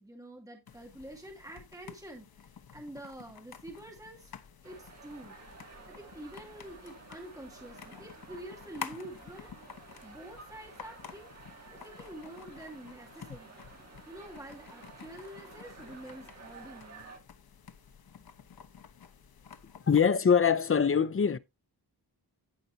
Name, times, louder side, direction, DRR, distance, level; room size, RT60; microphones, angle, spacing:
voice 1, 0.0-4.3 4.6-5.4 5.9-9.5 10.0-11.3 11.7-13.6 14.1-17.1, right 1 dB, 10° right, 2.3 m, -47 dB
sound 1, 0.7-20.0, left 6 dB, 65° left, 1.0 m, -50 dB
sound 2, 4.6-17.2, right 3 dB, 40° right, 2.2 m, -52 dB
voice 2, 19.9-21.4, left 6 dB, 35° left, 0.5 m, -23 dB
15.5 x 5.7 x 2.7 m
wide cardioid pair, 155°, 39 cm